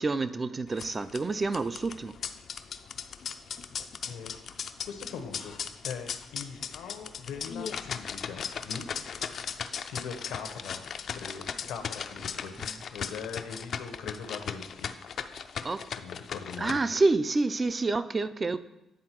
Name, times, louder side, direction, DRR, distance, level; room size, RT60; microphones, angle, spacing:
voice 1, 0.0-2.1 12.6-12.8 15.6-15.9 16.6-18.6, right 3 dB, 30° right, 14 dB, 0.4 m, -28 dB
sound 1, 0.7-16.7, left 7 dB, 60° left, 0.4 m, -38 dB
voice 2, 4.0-4.3 4.9-5.6 5.8-8.9 9.9-10.8 11.1-12.5 12.9-14.9 16.0-16.8, left 6 dB, 90° left, 6 dB, 0.8 m, -41 dB
9.5 x 3.6 x 4.5 m, 0.90 s
cardioid pair, 90°, 0 cm